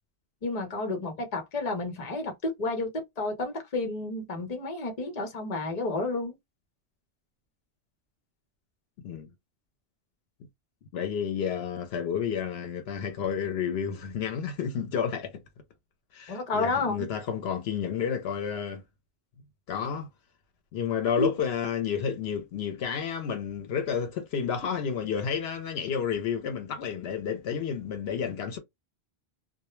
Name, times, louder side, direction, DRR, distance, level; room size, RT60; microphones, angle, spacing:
voice 1, 0.4-6.4 16.3-17.0 21.2-21.3, left 3 dB, 45° left, 0.8 m, -31 dB
voice 2, 10.9-15.4 16.1-18.8 19.7-20.1 20.7-28.6, left 7 dB, 75° left, 0.8 m, -31 dB
2.2 x 2.1 x 2.9 m
omnidirectional pair, 1.1 m